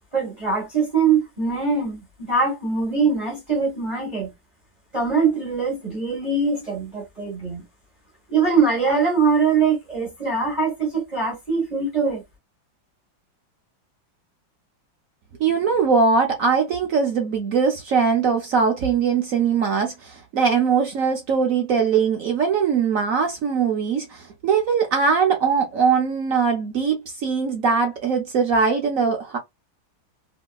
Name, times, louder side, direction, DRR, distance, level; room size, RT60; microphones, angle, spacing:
voice 1, 0.1-4.3 4.9-7.6 8.3-12.2, right 5 dB, 30° right, 1.0 m, -22 dB
voice 2, 15.4-29.4, right 5 dB, 70° right, 0.8 m, -21 dB
3.0 x 2.7 x 2.3 m
omnidirectional pair, 2.2 m